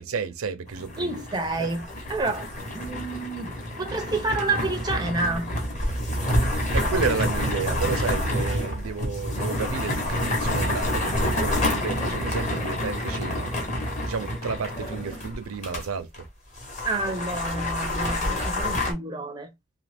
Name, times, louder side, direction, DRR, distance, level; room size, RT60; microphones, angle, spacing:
voice 1, 0.0-1.1 1.6-1.7 6.3-6.4 6.7-13.5 14.1-16.2, right 5 dB, 80° right, 0.5 m, -31 dB
sound 1, 0.7-15.9 16.1-16.2 16.6-18.9, left 1 dB, 35° left, 0.9 m, -28 dB
voice 2, 1.0-1.8 2.1-2.5 2.7-3.5 3.8-5.5 16.8-19.5, right 3 dB, 20° right, 0.4 m, -29 dB
2.8 x 2.4 x 3.3 m
head